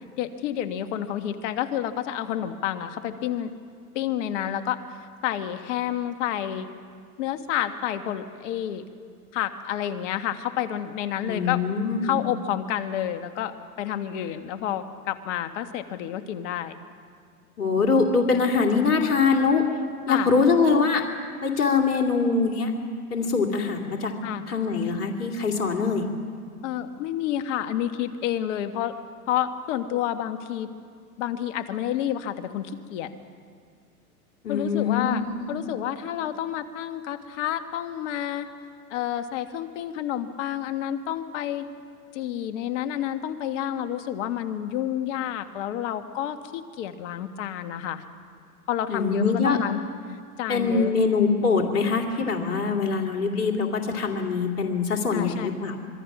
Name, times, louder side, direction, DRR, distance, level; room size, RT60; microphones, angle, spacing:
voice 1, 0.2-3.5 4.0-6.7 7.2-8.8 9.3-11.6 12.0-16.7 20.1-20.3 24.2-24.4 26.6-28.9 29.3-30.7 31.2-33.1 34.5-38.5 38.9-41.6 42.1-48.0 48.7-49.8 50.1-51.0 55.1-55.6, left 11 dB, 55° left, 9 dB, 1.7 m, -29 dB
voice 2, 11.2-12.2 17.6-19.6 20.1-21.0 21.4-22.7 23.1-24.1 24.5-26.1 34.4-35.7 48.9-49.6 50.5-55.8, left 4 dB, 80° left, 2 dB, 2.8 m, -23 dB
25.5 x 23.5 x 6.2 m, 2.1 s
hypercardioid pair, 110°, 45 cm